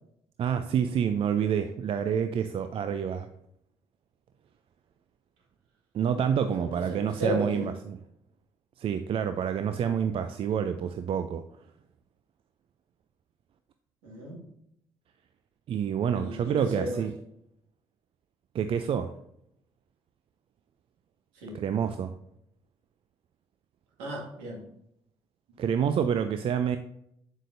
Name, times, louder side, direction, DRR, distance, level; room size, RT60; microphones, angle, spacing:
voice 1, 0.4-3.3 5.9-8.0 8.8-11.4 15.7-17.1 18.5-19.1 21.5-22.1 25.6-26.8, right 8 dB, 50° right, 9 dB, 0.5 m, -28 dB
voice 2, 6.5-7.7 14.0-14.4 16.1-17.0 21.4-21.6 24.0-24.6, equal, 75° right, -2 dB, 2.0 m, -34 dB
8.2 x 7.4 x 2.6 m, 0.76 s
hypercardioid pair, 50°, 12 cm